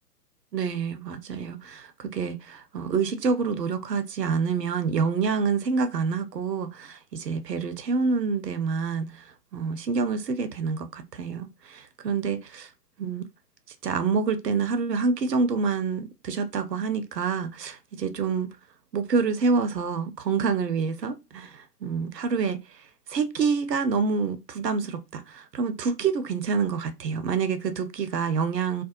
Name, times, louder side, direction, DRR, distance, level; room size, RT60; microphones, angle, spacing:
voice 1, 0.5-9.2 9.5-12.7 13.0-13.3 13.8-18.5 18.9-22.6 23.1-28.8, right 5 dB, 80° right, 0.6 m, -27 dB
2.4 x 2.1 x 2.6 m
figure-of-eight pair, 115°, 48 cm